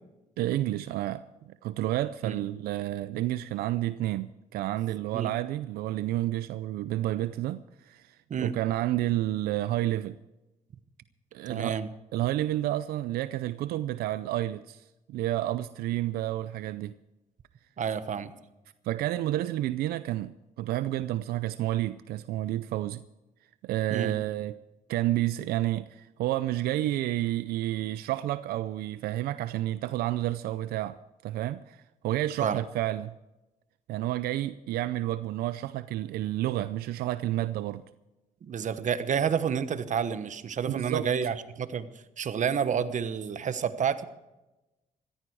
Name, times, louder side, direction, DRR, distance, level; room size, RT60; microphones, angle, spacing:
voice 1, 0.4-10.2 11.3-11.8 12.1-17.0 18.8-23.0 23.6-24.6 24.9-31.0 31.2-33.1 33.9-37.8 40.7-41.1, right 14 dB, 90° right, 0.5 m, -30 dB
voice 2, 11.5-11.9 17.8-18.3 23.9-24.1 32.4-32.6 38.4-41.9 42.2-44.0, right 7 dB, 55° right, 1.2 m, -29 dB
16.0 x 14.5 x 4.8 m
cardioid pair, 80°, 15 cm